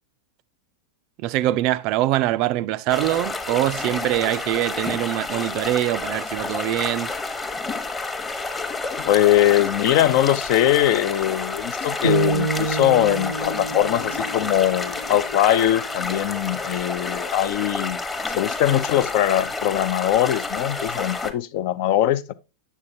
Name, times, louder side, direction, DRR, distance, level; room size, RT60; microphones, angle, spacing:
voice 1, 1.2-7.1, right 15 dB, 40° right, 0.4 m, -23 dB
sound 1, 2.9-21.3, left 3 dB, 15° left, 0.9 m, -30 dB
voice 2, 9.0-18.0 18.3-22.3, left 12 dB, 45° left, 0.4 m, -21 dB
sound 2, 12.0-16.2, right 3 dB, 85° left, 0.9 m, -28 dB
8.3 x 7.0 x 2.7 m
figure-of-eight pair, 90°, 0 cm